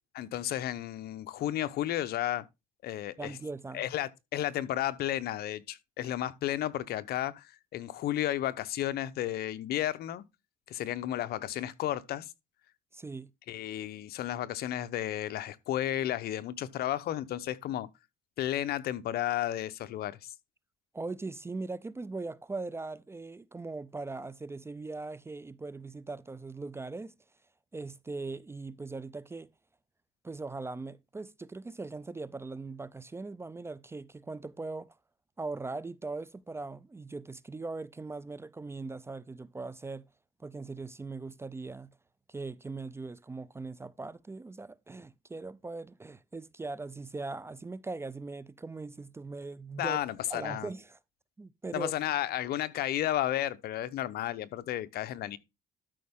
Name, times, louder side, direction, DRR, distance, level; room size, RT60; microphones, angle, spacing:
voice 1, 0.1-2.4 2.8-3.4 3.7-10.2 10.7-12.3 13.5-17.9 18.4-20.3 49.8-50.7 51.7-55.4, left 12 dB, 70° left, 0.8 m, -33 dB
voice 2, 3.2-3.8 12.9-13.3 20.9-27.1 27.7-29.5 30.2-34.9 35.4-40.1 40.4-41.9 42.3-50.0 50.3-51.0 51.4-51.9, right 3 dB, 15° right, 0.4 m, -40 dB
12.5 x 5.3 x 3.6 m
cardioid pair, 110°, 17 cm